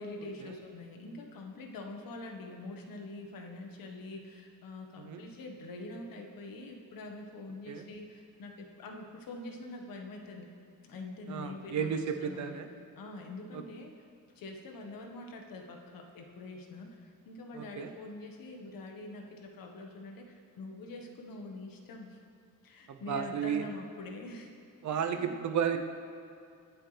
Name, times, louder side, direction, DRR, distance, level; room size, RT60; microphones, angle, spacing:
voice 1, 0.0-10.5 10.8-11.9 12.2-12.6 13.0-13.9 14.3-22.2 22.6-24.5 24.9-25.3, left 2 dB, 80° left, 2 dB, 1.5 m, -45 dB
voice 2, 11.3-12.7 17.6-17.9 22.9-23.6 24.8-25.8, right 7 dB, 55° right, 7 dB, 0.8 m, -33 dB
21.5 x 7.9 x 3.4 m, 2.5 s
wide cardioid pair, 175°, 34 cm